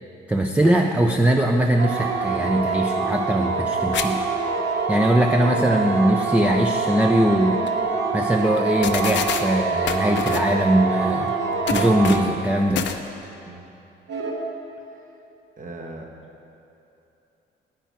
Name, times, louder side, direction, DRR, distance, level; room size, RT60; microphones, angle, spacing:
voice 1, 0.3-4.2 4.9-7.6 8.1-11.3 11.7-12.8, right 1 dB, 5° right, 2 dB, 0.5 m, -21 dB
sound 1, 1.8-12.6 14.1-14.3, right 4 dB, 60° right, 1.3 m, -25 dB
sound 2, 3.9-4.1 4.4-4.5 7.2-7.3 7.7-7.8 8.6-8.7 8.8-9.4 9.9-10.5 11.7-12.3 12.7-13.0, left 8 dB, 65° left, 0.6 m, -26 dB
voice 2, 11.4-12.4 13.5-13.6 15.6-16.1, right 2 dB, 45° right, 2 dB, 1.2 m, -40 dB
9.1 x 8.9 x 4.7 m, 2.8 s
cardioid pair, 90°, 20 cm